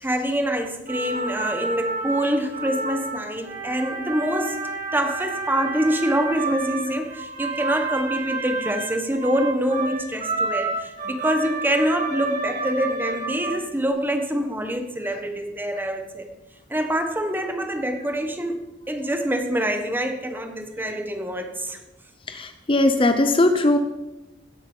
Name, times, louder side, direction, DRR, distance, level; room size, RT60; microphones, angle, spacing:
voice 1, 0.0-4.6 4.9-16.3 16.7-18.6 18.9-21.8, equal, 10° right, 5 dB, 1.3 m, -25 dB
sound 1, 0.9-13.9, right 3 dB, 45° right, 4.1 m, -30 dB
voice 2, 22.3-23.8, left 2 dB, 30° left, 8 dB, 0.8 m, -19 dB
17.0 x 8.4 x 5.5 m, 1.0 s
head